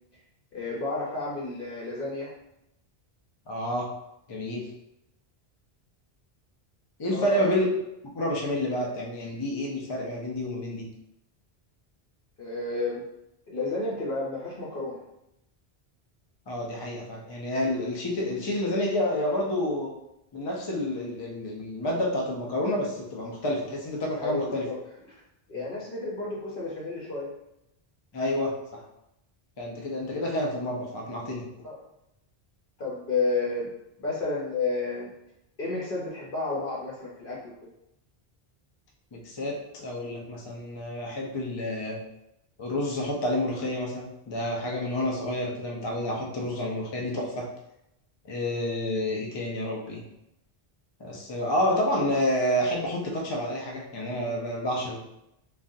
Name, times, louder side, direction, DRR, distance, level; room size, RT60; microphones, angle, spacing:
voice 1, 0.5-2.3 7.1-7.5 12.4-13.0 13.5-15.0 24.2-24.7 25.5-27.3 31.6-31.8 32.8-33.7 34.0-35.1 35.6-37.7, left 3 dB, 60° left, -6 dB, 0.9 m, -31 dB
voice 2, 3.5-3.9 4.3-4.7 7.0-7.7 8.0-10.8 16.5-19.9 20.3-24.7 28.1-28.8 29.6-31.5 39.1-42.0 42.6-47.5 48.2-50.0 51.0-55.0, left 1 dB, 35° left, -1 dB, 0.4 m, -29 dB
3.7 x 2.3 x 2.6 m, 0.84 s
omnidirectional pair, 1.1 m